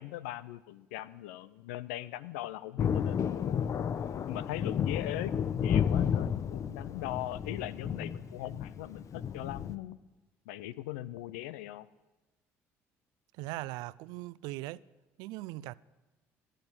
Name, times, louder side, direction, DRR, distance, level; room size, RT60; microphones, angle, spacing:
voice 1, 0.0-3.9 4.3-10.0 10.5-11.9, left 14 dB, 85° left, 0.6 m, -40 dB
Thunder, 2.8-9.8, left 8 dB, 50° left, 0.8 m, -32 dB
voice 2, 13.4-14.8 15.2-15.7, right 18 dB, 75° right, 0.4 m, -39 dB
15.5 x 10.0 x 8.9 m
hypercardioid pair, 65°, 7 cm